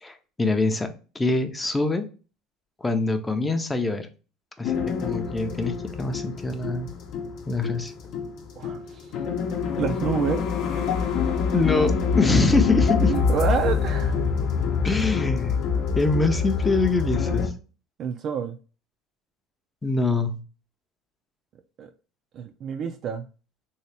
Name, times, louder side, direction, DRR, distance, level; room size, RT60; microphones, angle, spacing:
voice 1, 0.0-2.1 2.8-4.1 4.6-6.9 7.5-7.9 11.5-13.1 14.8-15.6 16.0-17.5 19.8-20.4, left 3 dB, 15° left, 0.5 m, -24 dB
sound 1, 4.6-17.5, left 5 dB, 60° left, 0.7 m, -25 dB
voice 2, 8.6-9.1 9.8-10.5 13.1-14.2 18.0-18.6 21.8-21.9 22.3-23.3, right 6 dB, 50° right, 0.4 m, -28 dB
3.3 x 2.7 x 3.2 m
supercardioid pair, 110°, 0 cm